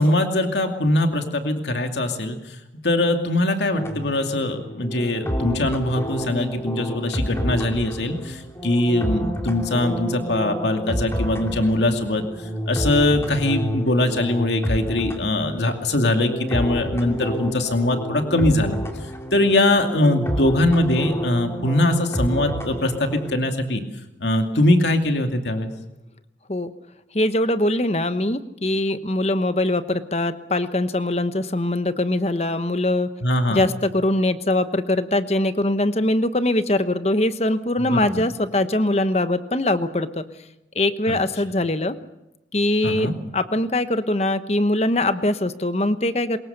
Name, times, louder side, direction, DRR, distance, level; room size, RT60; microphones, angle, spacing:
voice 1, 0.0-2.4 2.8-12.2 12.7-18.8 19.3-23.8 24.2-25.7 33.2-33.7 37.8-38.2 41.1-41.2 42.8-43.1, left 1 dB, 85° left, 5 dB, 2.5 m, -21 dB
sound 1, 3.7-23.4, equal, 15° left, 2.6 m, -29 dB
voice 2, 27.1-33.1 33.5-40.2 40.7-42.0 42.5-43.1 43.3-46.4, left 1 dB, 35° left, 11 dB, 1.1 m, -22 dB
24.0 x 21.5 x 6.8 m, 0.93 s
head